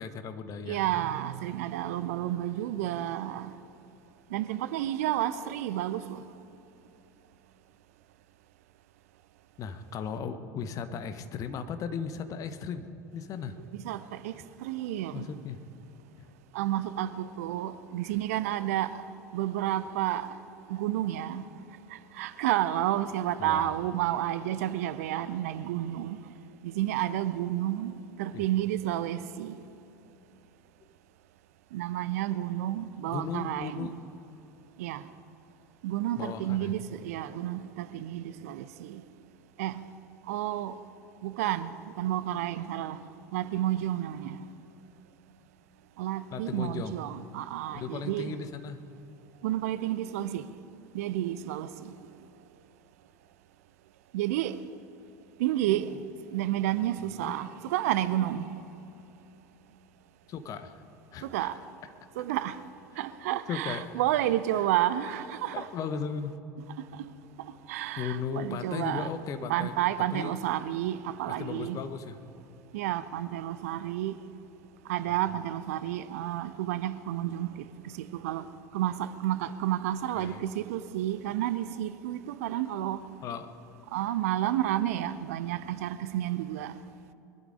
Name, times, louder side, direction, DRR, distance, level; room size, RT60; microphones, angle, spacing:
voice 1, 0.0-0.8 9.6-12.8 13.1-13.6 14.3-14.4 15.1-15.6 16.2-16.3 18.1-18.2 23.4-23.7 28.3-28.4 33.1-33.9 36.2-36.7 46.3-46.9 47.7-48.8 55.7-55.9 57.0-57.3 60.3-60.8 61.1-61.5 63.5-63.9 65.5-66.3 68.0-69.7 70.1-70.4 71.2-72.2 80.1-80.4 83.2-83.5, left 6 dB, 40° left, 10 dB, 1.0 m, -36 dB
voice 2, 0.7-3.5 4.3-6.2 13.8-14.3 14.6-15.3 16.5-18.9 19.3-20.3 20.7-21.4 22.2-26.2 26.6-27.9 28.2-29.5 31.7-33.9 34.8-35.0 35.8-39.0 39.6-39.7 40.3-40.7 41.2-41.7 42.0-43.0 43.3-44.4 46.0-48.3 49.4-50.4 50.9-51.7 54.1-54.5 55.4-55.9 56.3-58.5 61.3-61.5 62.2-62.6 63.0-65.7 67.7-69.1 69.5-71.8 72.7-74.1 74.9-77.5 78.2-78.4 78.7-83.0 83.9-86.7, right 13 dB, 60° right, 14 dB, 0.6 m, -30 dB
21.5 x 11.5 x 5.0 m, 2.9 s
figure-of-eight pair, 70°, 9 cm